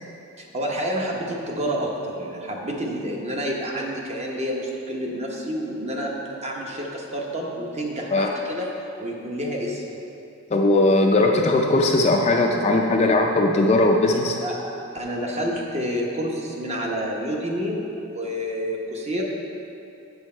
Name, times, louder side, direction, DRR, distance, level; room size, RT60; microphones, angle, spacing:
voice 1, 0.4-8.7 9.0-9.8 14.4-19.2, equal, 30° right, -1 dB, 0.9 m, -29 dB
voice 2, 10.5-14.4, left 2 dB, 30° left, 1 dB, 0.4 m, -19 dB
8.1 x 6.8 x 4.4 m, 2.8 s
head